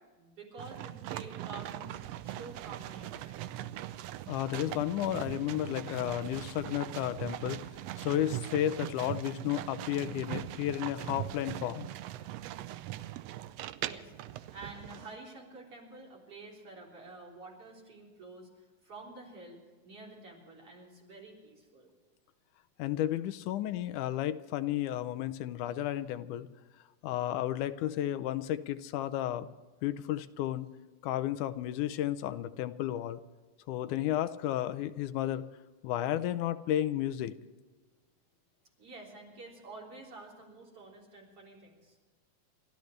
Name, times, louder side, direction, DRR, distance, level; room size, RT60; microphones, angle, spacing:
voice 1, 0.2-3.4 13.8-18.5 18.8-19.6 19.8-21.9 38.8-42.0, right 2 dB, 50° right, -3 dB, 4.6 m, -49 dB
sound 1, 0.6-15.1, right 14 dB, 80° right, 1.5 m, -41 dB
voice 2, 4.3-7.6 8.0-11.9 22.8-26.5 27.0-29.5 29.8-30.7 31.0-33.2 33.7-35.5 35.8-37.3, left 12 dB, 85° left, 13 dB, 2.2 m, -32 dB
28.5 x 13.0 x 3.3 m, 1.4 s
omnidirectional pair, 3.5 m